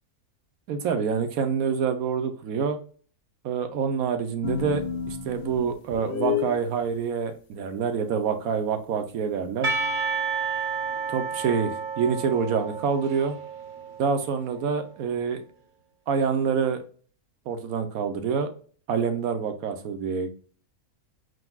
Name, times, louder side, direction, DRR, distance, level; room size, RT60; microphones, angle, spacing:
voice 1, 0.7-2.8 3.4-9.7 11.1-13.4 14.0-15.4 16.1-16.8 17.5-18.5 18.9-20.3, right 6 dB, 70° right, 8 dB, 1.1 m, -26 dB
sound 1, 4.4-6.6, left 7 dB, 65° left, 0.5 m, -30 dB
Percussion / Church bell, 9.6-14.4, right 5 dB, 45° right, 0.6 m, -31 dB
4.7 x 3.9 x 2.3 m, 0.43 s
omnidirectional pair, 1.6 m